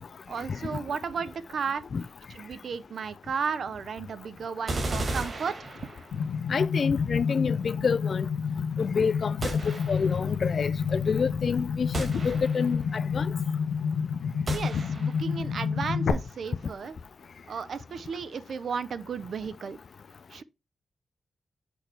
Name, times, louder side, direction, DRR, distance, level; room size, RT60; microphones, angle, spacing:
voice 1, 0.3-1.8 2.3-5.7 14.5-16.9 17.5-19.8 20.3-20.4, right 6 dB, 65° right, 0.7 m, -34 dB
sound 1, 4.7-6.3 9.4-10.3 11.9-12.9 14.5-15.3, right 2 dB, 40° right, 2.0 m, -34 dB
sound 2, 6.1-16.1, left 6 dB, 85° left, 0.7 m, -29 dB
voice 2, 6.5-8.3 8.8-13.3, left 5 dB, 50° left, 0.3 m, -28 dB
6.3 x 3.3 x 6.0 m
wide cardioid pair, 130°, 0 cm